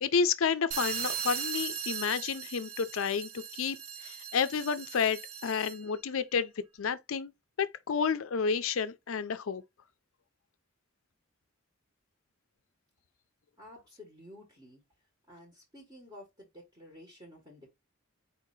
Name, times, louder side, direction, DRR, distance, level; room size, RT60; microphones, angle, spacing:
voice 1, 0.0-3.8 4.0-6.5 6.8-7.3 7.6-9.6, left 6 dB, 75° left, 0.5 m, -30 dB
sound 1, 0.7-5.9, right 7 dB, 80° right, 0.8 m, -38 dB
voice 2, 13.6-14.8 15.3-17.7, left 1 dB, 20° right, 1.4 m, -52 dB
4.4 x 2.8 x 4.0 m
head